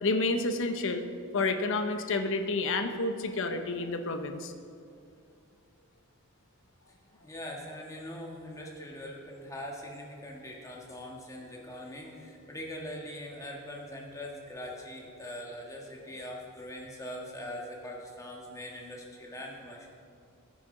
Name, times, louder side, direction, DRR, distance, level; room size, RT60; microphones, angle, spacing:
voice 1, 0.0-1.0 1.3-4.5, left 3 dB, 60° left, 7 dB, 0.7 m, -29 dB
voice 2, 7.2-19.9, left 1 dB, 15° left, -1 dB, 1.5 m, -42 dB
14.5 x 9.5 x 3.8 m, 2.4 s
head